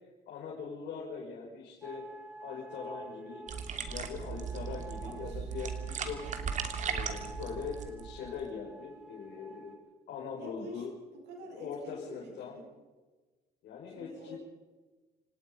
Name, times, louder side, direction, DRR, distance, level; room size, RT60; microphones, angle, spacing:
voice 1, 0.3-2.0 2.4-3.5 3.9-6.2 6.8-9.8 10.1-10.9 11.5-12.6 13.6-14.4, left 6 dB, 70° left, -3 dB, 5.9 m, -42 dB
sound 1, 1.8-9.8, right 2 dB, 5° right, 5.1 m, -49 dB
sound 2, 3.5-8.5, right 6 dB, 45° right, 2.9 m, -37 dB
voice 2, 5.0-5.5 10.4-10.9 11.1-12.7 13.9-14.4, right 1 dB, 85° right, 1 dB, 7.5 m, -48 dB
28.0 x 17.5 x 5.5 m, 1.3 s
cardioid pair, 110°, 17 cm